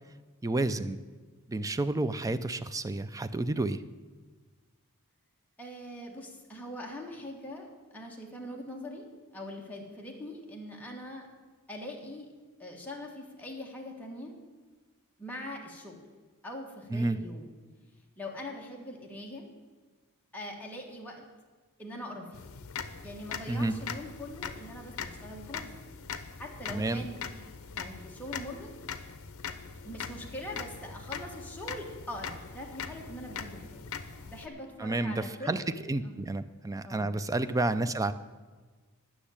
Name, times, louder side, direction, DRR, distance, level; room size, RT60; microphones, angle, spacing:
voice 1, 0.4-1.0 1.5-3.8 16.9-17.2 23.5-23.8 26.7-27.1 34.8-38.1, right 2 dB, 15° right, 12 dB, 0.4 m, -30 dB
voice 2, 5.6-9.1 9.3-11.2 11.7-12.3 12.6-14.3 15.2-16.0 16.4-17.5 18.2-19.5 20.3-21.2 21.8-22.5 23.0-25.7 26.4-28.7 29.8-33.9 34.3-35.6 36.0-36.1 36.8-37.1, left 1 dB, 5° left, -2 dB, 1.5 m, -42 dB
clock tick, 22.3-34.5, left 6 dB, 70° left, 0.7 m, -41 dB
10.0 x 6.2 x 8.5 m, 1.4 s
head